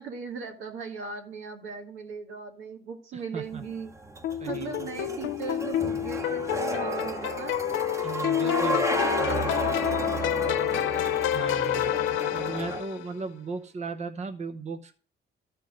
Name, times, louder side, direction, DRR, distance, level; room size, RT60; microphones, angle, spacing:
voice 1, 0.0-3.9 4.5-7.6 8.4-10.9, right 5 dB, 85° right, 1.9 m, -38 dB
voice 2, 3.1-3.6 4.4-4.7 8.0-8.8 11.3-12.0 12.3-14.9, right 4 dB, 35° right, 0.8 m, -36 dB
sound 1, 3.5-12.8, right 2 dB, 15° right, 1.1 m, -33 dB
sound 2, 4.2-13.1, left 12 dB, 80° left, 0.5 m, -28 dB
12.5 x 4.5 x 5.2 m
cardioid pair, 90°, 20 cm